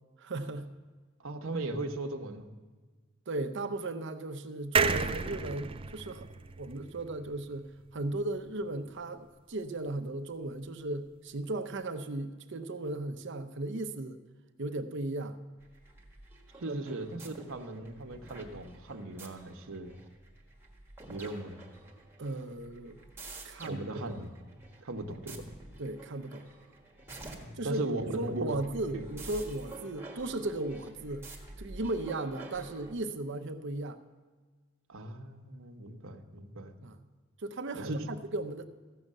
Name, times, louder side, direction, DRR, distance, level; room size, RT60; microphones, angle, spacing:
voice 1, 0.2-0.7 3.3-6.3 6.6-14.2 14.6-15.4 16.7-17.0 22.2-23.0 23.4-24.2 25.8-26.5 27.6-31.3 31.6-34.0 36.8-37.0 37.4-38.7, right 2 dB, 60° right, 8 dB, 0.7 m, -36 dB
voice 2, 1.2-2.5 16.6-20.0 21.1-21.6 23.6-24.3 24.8-25.5 27.3-28.4 28.9-29.1 34.9-36.7 37.7-38.1, right 2 dB, 85° right, 4 dB, 1.0 m, -38 dB
sound 1, 4.7-8.2 8.6-8.7 8.9-9.0, right 5 dB, 25° right, 0.5 m, -32 dB
sound 2, 15.6-33.0, right 2 dB, 10° right, 1.5 m, -49 dB
14.5 x 6.6 x 7.3 m, 1.4 s
head